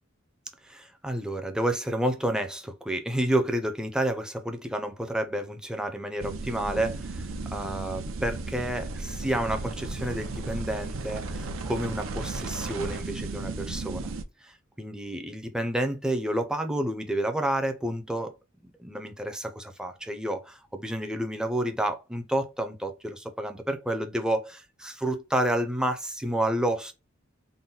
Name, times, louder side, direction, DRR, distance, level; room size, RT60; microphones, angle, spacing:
voice 1, 0.6-14.1 14.4-18.4 18.8-26.9, right 1 dB, 5° right, 0.5 m, -30 dB
sound 1, 6.2-14.2, right 3 dB, 75° right, 0.6 m, -35 dB
3.9 x 2.1 x 3.9 m
head